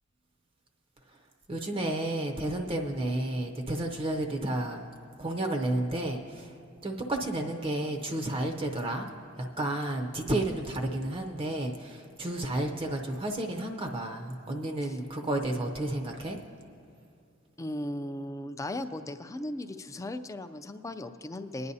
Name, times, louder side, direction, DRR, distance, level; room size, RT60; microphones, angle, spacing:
voice 1, 1.5-4.9 5.2-6.5 6.8-9.1 9.6-16.4, right 1 dB, 25° right, 3 dB, 0.6 m, -31 dB
voice 2, 17.6-21.7, left 1 dB, 15° left, 9 dB, 0.4 m, -37 dB
21.0 x 9.6 x 2.7 m, 2.5 s
head